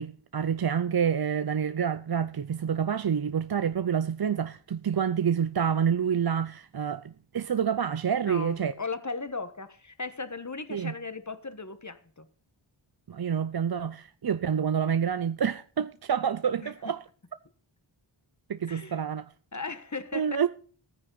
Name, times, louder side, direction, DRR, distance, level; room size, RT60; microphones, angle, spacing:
voice 1, 0.0-8.7 10.7-10.9 13.1-17.0 18.5-19.3 20.1-20.5, right 7 dB, 50° right, 0.6 m, -28 dB
voice 2, 8.2-12.3 16.6-16.7 18.7-19.0 19.5-20.5, left 4 dB, 35° left, 1.4 m, -37 dB
14.0 x 9.7 x 4.1 m
wide cardioid pair, 40°, 48 cm